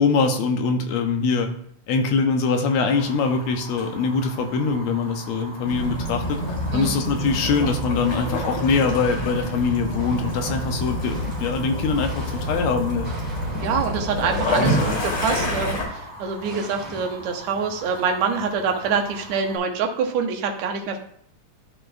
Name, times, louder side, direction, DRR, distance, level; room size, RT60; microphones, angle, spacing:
voice 1, 0.0-1.5 1.9-6.4 6.7-13.1 14.6-14.8, left 4 dB, 75° left, 5 dB, 1.8 m, -23 dB
Fire, 2.9-19.6, equal, 15° left, 0.9 m, -41 dB
Waves surf / Splash splatter / Trickle dribble, 5.6-15.8, equal, 45° left, 2.2 m, -27 dB
sound 1, 7.3-8.6 8.9-17.2, equal, 25° right, 2.2 m, -41 dB
voice 2, 13.6-15.8 16.2-21.0, right 5 dB, 75° right, 3 dB, 2.1 m, -25 dB
12.0 x 4.1 x 2.5 m, 0.64 s
omnidirectional pair, 3.3 m